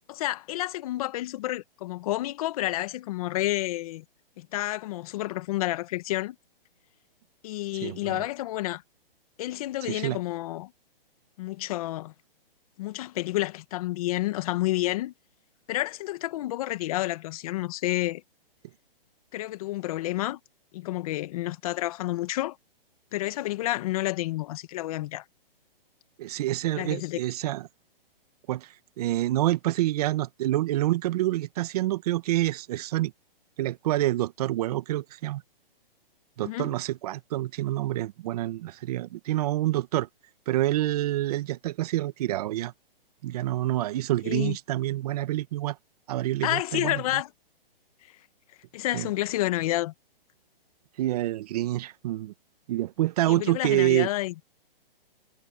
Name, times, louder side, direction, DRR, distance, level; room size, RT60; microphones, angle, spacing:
voice 1, 0.1-4.0 4.4-6.4 7.4-8.8 9.4-10.7 11.4-12.1 12.8-15.1 15.7-18.2 19.3-20.4 20.7-22.6 23.1-25.3 26.8-27.2 36.4-36.7 44.2-44.6 46.4-47.3 48.7-49.9 53.3-54.3, left 16 dB, 40° left, 1.6 m, -30 dB
voice 2, 7.7-8.2 9.9-10.2 26.2-27.7 28.5-33.1 33.6-35.4 36.4-40.1 40.5-42.7 43.2-45.8 46.1-47.0 48.9-49.1 51.0-52.3 52.7-54.1, right 15 dB, 40° right, 1.6 m, -27 dB
hypercardioid pair, 150°, 29 cm